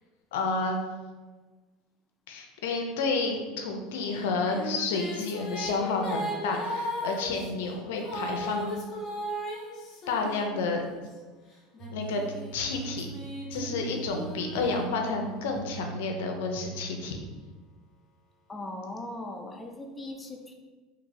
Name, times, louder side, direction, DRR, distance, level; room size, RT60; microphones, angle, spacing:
voice 1, 0.3-0.8 2.3-8.7 10.1-10.8 11.9-12.2 12.5-13.1 13.5-17.2, left 3 dB, 85° left, 3 dB, 0.5 m, -30 dB
Female singing, 4.1-11.1 11.7-15.5, equal, 45° left, 0.8 m, -37 dB
sound 1, 11.8-17.0, right 5 dB, 45° right, 0.4 m, -42 dB
voice 2, 18.5-20.5, left 1 dB, 15° left, 2 dB, 0.4 m, -39 dB
3.0 x 2.7 x 2.6 m, 1.3 s
supercardioid pair, 105°, 0 cm